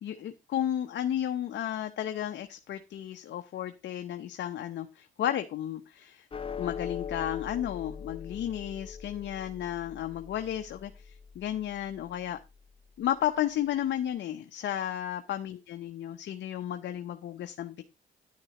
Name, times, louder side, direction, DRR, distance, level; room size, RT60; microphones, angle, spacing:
voice 1, 0.0-6.3 6.6-12.4 13.0-17.8, left 11 dB, 65° left, 7 dB, 0.7 m, -33 dB
sound 1, 6.3-12.8, left 6 dB, 25° left, 0.8 m, -42 dB
10.0 x 9.6 x 2.9 m, 0.26 s
cardioid pair, 90°, 20 cm